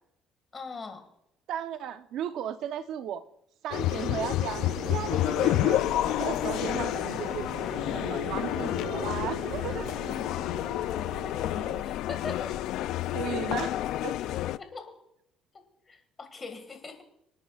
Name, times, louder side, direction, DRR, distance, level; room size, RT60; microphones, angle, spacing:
voice 1, 0.5-1.0 11.8-12.5 14.6-15.0 15.9-17.0, left 4 dB, 30° left, 7 dB, 2.0 m, -40 dB
voice 2, 1.5-3.2 3.6-7.5 7.9-10.0 13.1-13.7 14.0-14.2, right 9 dB, 65° right, 10 dB, 0.8 m, -35 dB
sound 1, 3.7-14.6, left 14 dB, 70° left, 0.4 m, -29 dB
sound 2, 4.5-11.8, right 7 dB, 85° right, 1.7 m, -42 dB
26.5 x 9.6 x 2.5 m, 0.77 s
cardioid pair, 125°, 0 cm